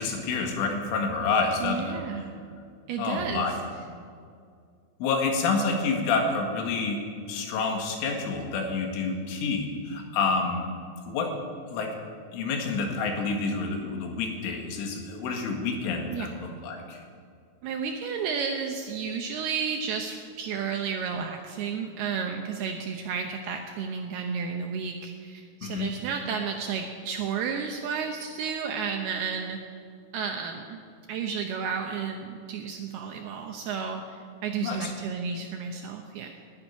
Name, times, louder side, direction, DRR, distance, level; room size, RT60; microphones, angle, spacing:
voice 1, 0.0-2.0 3.0-3.5 5.0-7.0 7.3-10.7 11.1-11.3 11.7-11.9 12.3-17.0 25.6-25.9 34.6-34.9, left 4 dB, 85° left, 2 dB, 4.2 m, -28 dB
voice 2, 1.6-2.3 2.9-3.5 16.1-16.3 17.6-29.6 30.1-30.8 31.1-36.3, right 6 dB, 80° right, 3 dB, 2.4 m, -32 dB
12.0 x 10.5 x 9.9 m, 2.3 s
omnidirectional pair, 5.5 m